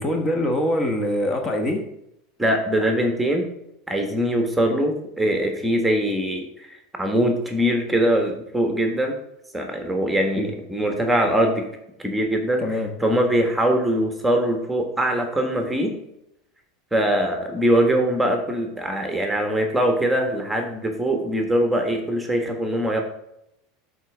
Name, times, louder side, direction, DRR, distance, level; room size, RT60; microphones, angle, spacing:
voice 1, 0.0-1.8 10.4-10.5 12.6-12.9, left 1 dB, 25° left, 4 dB, 1.5 m, -23 dB
voice 2, 2.4-3.5 3.9-6.7 7.0-9.2 9.5-11.7 12.0-16.0 16.9-23.0, right 1 dB, 5° right, 4 dB, 1.4 m, -22 dB
12.5 x 4.4 x 3.5 m, 0.81 s
hypercardioid pair, 80°, 0 cm